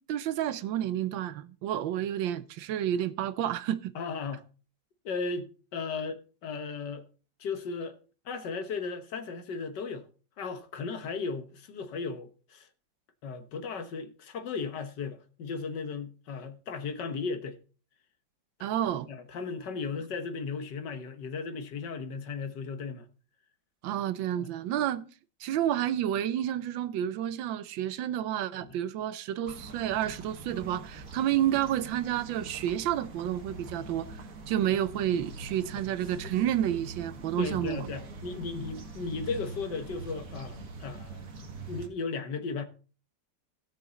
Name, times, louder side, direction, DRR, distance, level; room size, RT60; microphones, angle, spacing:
voice 1, 0.0-3.9 18.6-19.1 23.8-25.0 25.4-34.1 34.5-37.9, right 11 dB, 90° right, 1.5 m, -30 dB
voice 2, 4.0-4.4 5.1-7.0 7.4-8.0 8.3-10.1 10.4-12.7 13.2-17.6 18.6-18.7 19.1-23.1 24.4-24.5 24.8-24.9 28.6-28.8 37.4-41.3 41.7-42.7, left 4 dB, 70° left, 1.8 m, -36 dB
sound 1, 29.5-41.9, right 3 dB, 50° right, 1.7 m, -43 dB
17.0 x 6.2 x 4.0 m
omnidirectional pair, 2.0 m